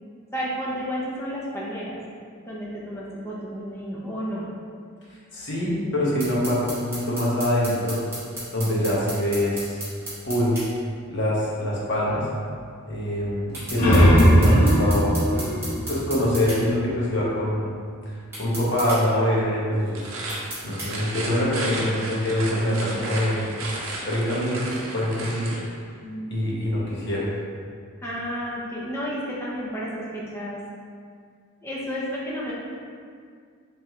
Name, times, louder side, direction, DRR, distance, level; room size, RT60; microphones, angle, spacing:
voice 1, 0.3-2.0 2.5-4.5 26.0-26.5 28.0-30.6 31.6-32.5, equal, 10° left, -6 dB, 0.6 m, -31 dB
voice 2, 5.3-8.0 8.5-9.8 10.3-10.6 11.1-12.3 12.9-15.1 15.9-17.7 18.4-20.1 20.6-23.5 24.1-25.6 26.3-27.3, left 1 dB, 55° left, -7 dB, 1.0 m, -24 dB
sound 1, 6.2-10.7 13.5-16.6 18.3-19.0 20.3-20.9, right 1 dB, 10° right, 1.1 m, -35 dB
sound 2, 13.5-16.9, equal, 80° left, 0.9 m, -19 dB
sound 3, 19.9-25.7, right 2 dB, 70° right, 0.6 m, -34 dB
3.5 x 3.2 x 3.0 m, 2.1 s
head